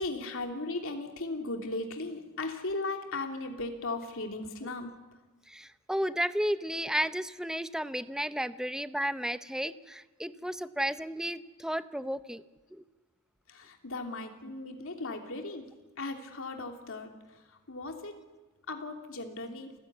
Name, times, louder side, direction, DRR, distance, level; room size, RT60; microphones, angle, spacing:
voice 1, 0.0-4.9 13.5-15.7 16.0-18.2 18.7-19.7, left 2 dB, 65° left, 4 dB, 3.1 m, -37 dB
voice 2, 5.5-12.4 12.7-12.8, equal, 5° right, 12 dB, 0.7 m, -33 dB
28.0 x 15.5 x 9.5 m, 1.2 s
head